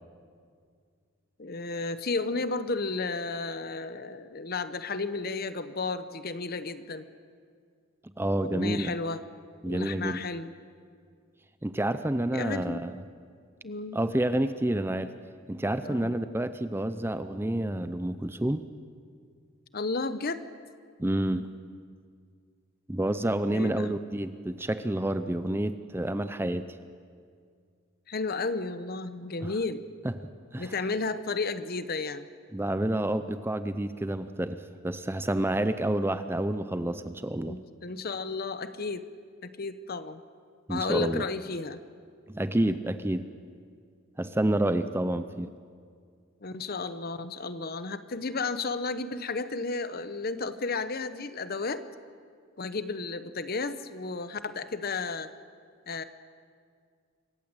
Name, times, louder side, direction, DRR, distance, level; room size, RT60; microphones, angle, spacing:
voice 1, 1.4-7.0 8.4-9.2 9.6-10.5 12.3-12.8 13.6-14.0 15.8-16.1 19.7-20.4 23.5-23.9 28.1-29.8 30.6-32.3 37.4-39.0 39.4-40.2 40.7-41.8 46.4-51.8 52.6-55.3 55.9-56.0, left 3 dB, 45° left, 12 dB, 0.9 m, -33 dB
voice 2, 8.2-8.9 9.6-10.2 11.6-13.0 13.9-15.1 15.5-18.6 21.0-21.5 22.9-26.7 29.4-29.5 30.0-30.1 30.5-30.7 32.5-37.6 40.7-41.2 42.3-43.3 44.2-45.5, right 1 dB, 10° right, 11 dB, 0.5 m, -29 dB
25.5 x 15.0 x 8.9 m, 2.1 s
head